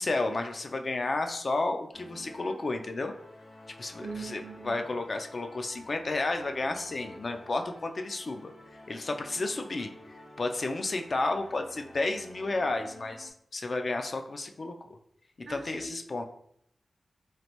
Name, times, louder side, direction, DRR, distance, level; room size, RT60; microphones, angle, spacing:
voice 1, 0.0-3.1 3.8-8.5 8.9-9.9 10.4-14.7 15.5-16.2, left 2 dB, 50° left, 5 dB, 0.3 m, -32 dB
sound 1, 1.9-13.3, left 1 dB, 80° left, 1.0 m, -51 dB
voice 2, 4.0-4.8 15.5-16.0, right 4 dB, 60° right, 4 dB, 0.5 m, -41 dB
3.1 x 2.5 x 2.9 m, 0.69 s
wide cardioid pair, 85°, 0 cm